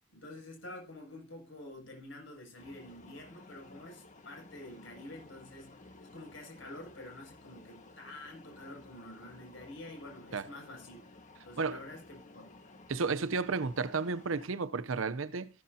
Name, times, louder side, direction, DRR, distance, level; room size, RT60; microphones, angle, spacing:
voice 1, 0.1-11.0 11.4-12.5, left 1 dB, 70° left, 7.0 m, -48 dB
sound 1, 2.6-14.5, left 2 dB, 40° left, 1.6 m, -55 dB
voice 2, 12.9-15.5, right 4 dB, 85° right, 0.7 m, -32 dB
14.0 x 13.0 x 2.8 m
head